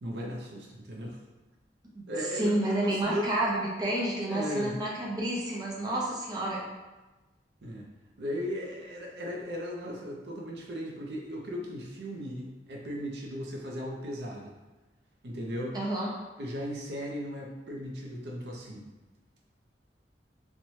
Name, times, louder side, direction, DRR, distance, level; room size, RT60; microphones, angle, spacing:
voice 1, 0.0-1.2 2.1-3.3 4.3-4.7 7.6-7.9 8.2-14.6 15.2-15.8 16.4-18.9, equal, 65° right, -1 dB, 0.5 m, -37 dB
voice 2, 2.3-6.6 15.7-16.1, right 1 dB, 20° right, -4 dB, 0.6 m, -30 dB
3.0 x 2.2 x 2.7 m, 1.1 s
head